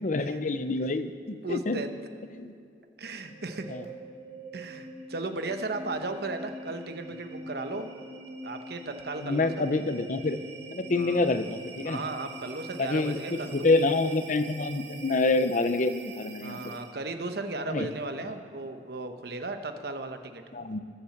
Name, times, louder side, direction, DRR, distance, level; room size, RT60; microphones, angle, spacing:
voice 1, 0.0-1.8 2.4-2.5 3.7-3.8 9.2-10.4 10.7-12.0 12.8-16.6 17.7-17.9 20.5-20.8, left 3 dB, 45° left, 11 dB, 0.7 m, -27 dB
voice 2, 1.4-1.9 3.0-3.8 4.5-7.9 8.4-9.7 10.9-11.2 11.8-13.7 16.4-20.4, right 2 dB, 60° right, 7 dB, 1.0 m, -36 dB
sound 1, 3.2-17.1, right 2 dB, 80° right, 2.3 m, -44 dB
19.5 x 7.4 x 7.2 m, 2.3 s
head